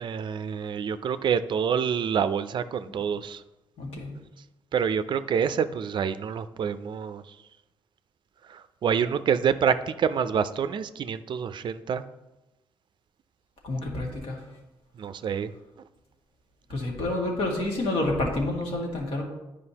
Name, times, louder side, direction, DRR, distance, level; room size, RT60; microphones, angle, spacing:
voice 1, 0.0-3.4 4.7-7.4 8.5-12.0 15.0-15.5, right 7 dB, 55° right, 12 dB, 0.4 m, -27 dB
voice 2, 3.8-4.1 13.6-14.4 16.7-19.2, left 2 dB, 70° left, -1 dB, 1.8 m, -28 dB
9.7 x 5.0 x 2.9 m, 1.0 s
cardioid pair, 100°, 10 cm